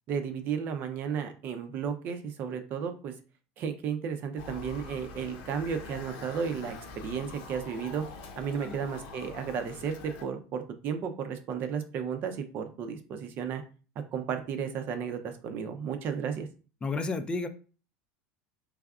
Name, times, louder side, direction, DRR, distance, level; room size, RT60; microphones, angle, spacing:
voice 1, 0.1-3.1 3.6-8.1 8.4-13.6 14.1-16.5, right 7 dB, 50° right, 7 dB, 0.7 m, -33 dB
Motor vehicle (road) / Siren, 4.4-10.2, left 4 dB, 70° left, 0.9 m, -44 dB
voice 2, 16.8-17.5, left 3 dB, 20° left, 8 dB, 0.5 m, -31 dB
3.5 x 3.3 x 2.4 m, 0.36 s
supercardioid pair, 105°, 4 cm